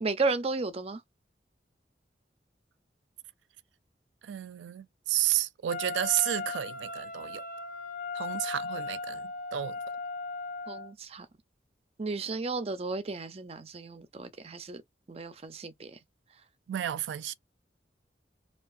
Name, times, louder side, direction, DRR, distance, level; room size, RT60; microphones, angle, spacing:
voice 1, 0.0-1.0 10.7-11.3 12.0-14.8 15.1-16.0, right 3 dB, 35° right, 0.5 m, -33 dB
voice 2, 4.2-7.5 8.1-9.8 16.7-17.3, right 12 dB, 85° right, 0.3 m, -31 dB
Wind instrument woodwind instrument, 5.7-10.9, left 4 dB, 50° left, 0.8 m, -37 dB
4.6 x 2.5 x 2.4 m
head